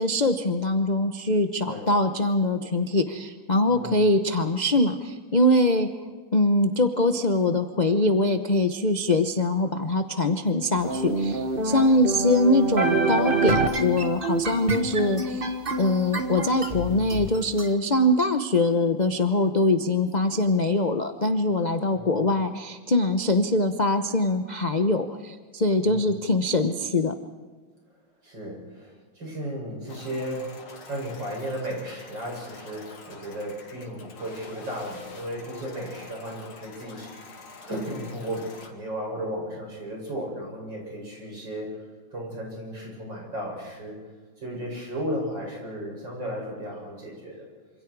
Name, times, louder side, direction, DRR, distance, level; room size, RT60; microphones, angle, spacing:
voice 1, 0.0-5.9 6.3-15.5 15.8-27.1, left 2 dB, 40° left, 7 dB, 0.6 m, -23 dB
voice 2, 3.7-4.0 11.7-11.8 21.8-22.3 25.8-26.2 28.2-37.1 37.7-44.0 44.4-47.5, equal, 60° right, -2 dB, 8.2 m, -35 dB
sound 1, 10.8-17.7, right 3 dB, 30° right, 1.7 m, -27 dB
sound 2, 29.9-38.7, left 4 dB, 80° left, 3.2 m, -46 dB
27.0 x 26.5 x 4.8 m, 1.4 s
omnidirectional pair, 2.2 m